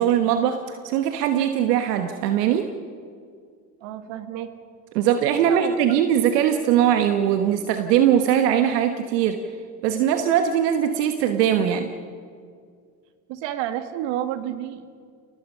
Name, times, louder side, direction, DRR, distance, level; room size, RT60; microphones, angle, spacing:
voice 1, 0.0-2.7 4.9-9.4 9.8-11.9, right 9 dB, 85° right, 7 dB, 1.3 m, -21 dB
voice 2, 3.8-4.5 5.4-5.7 13.3-15.0, right 11 dB, 65° right, 9 dB, 1.9 m, -30 dB
29.0 x 18.5 x 5.6 m, 2.2 s
hypercardioid pair, 80°, 47 cm